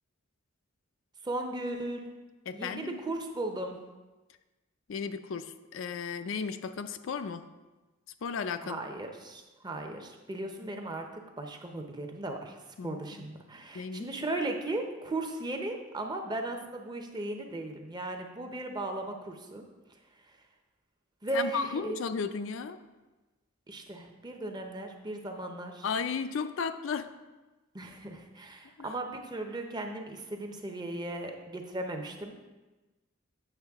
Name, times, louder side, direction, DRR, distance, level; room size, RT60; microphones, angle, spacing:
voice 1, 1.2-2.1 2.5-3.8 8.6-19.6 19.9-20.4 21.2-22.0 23.7-25.9 27.7-32.5, right 2 dB, 20° right, 4 dB, 0.7 m, -37 dB
voice 2, 2.5-3.0 4.9-7.5 8.2-8.8 12.8-13.2 13.7-14.1 21.3-22.8 25.8-27.1 28.8-28.9, left 5 dB, 75° left, 10 dB, 0.4 m, -34 dB
8.0 x 6.5 x 3.5 m, 1.2 s
head